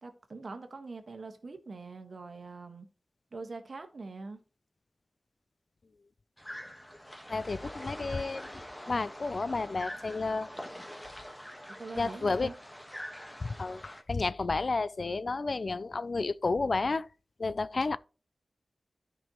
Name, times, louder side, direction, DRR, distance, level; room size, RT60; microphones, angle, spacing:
voice 1, 0.0-2.9 3.3-4.4 7.6-7.9 11.7-12.6, right 3 dB, 65° right, 1.3 m, -44 dB
sound 1, 6.4-14.0, equal, 10° left, 1.3 m, -45 dB
voice 2, 7.3-8.5 8.9-10.5 12.0-12.5 13.4-17.1 17.4-18.0, left 3 dB, 55° left, 0.4 m, -31 dB
12.5 x 5.3 x 3.0 m
wide cardioid pair, 70°, 0 cm